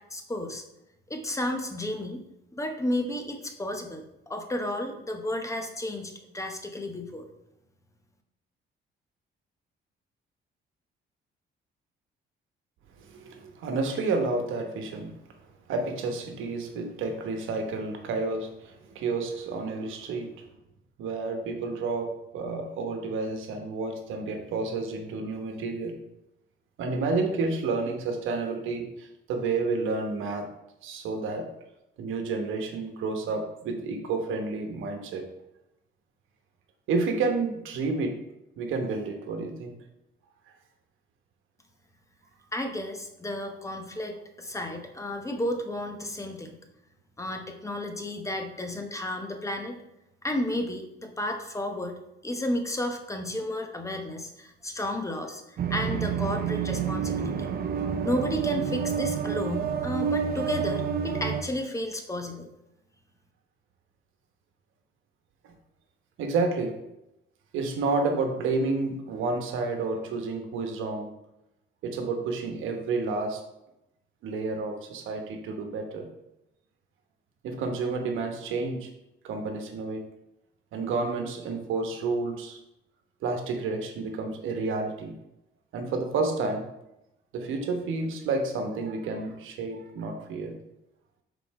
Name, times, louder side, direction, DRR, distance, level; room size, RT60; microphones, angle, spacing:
voice 1, 0.1-0.6 1.1-2.2 2.5-7.3 42.5-46.6 47.2-49.8 50.2-52.0 52.2-57.5 58.0-62.5, left 1 dB, 15° left, 4 dB, 0.9 m, -32 dB
voice 2, 13.1-15.1 15.7-20.3 21.0-26.0 26.8-30.5 30.8-31.5 32.0-35.2 36.9-38.2 38.6-39.8 65.4-65.5 66.2-66.7 67.5-71.1 71.8-73.4 74.2-76.1 77.4-78.9 79.2-80.1 80.7-82.6 83.2-85.1 85.7-86.7 87.3-90.5, right 3 dB, 85° right, 5 dB, 1.0 m, -30 dB
sound 1, 55.6-61.4, right 7 dB, 50° right, 0.6 m, -29 dB
5.3 x 4.1 x 4.7 m, 0.87 s
cardioid pair, 90°, 20 cm